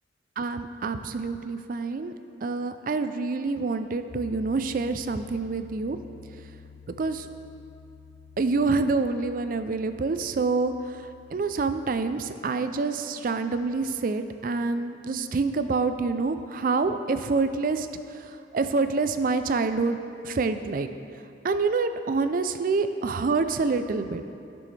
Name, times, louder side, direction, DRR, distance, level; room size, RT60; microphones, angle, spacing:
voice 1, 0.4-2.1 2.4-6.0 7.0-7.3 8.4-20.0 20.2-20.9 21.4-24.2, right 4 dB, 45° right, 10 dB, 0.4 m, -27 dB
Piano, 4.1-11.8, left 5 dB, 40° left, 0.5 m, -49 dB
14.5 x 6.1 x 3.3 m, 2.6 s
head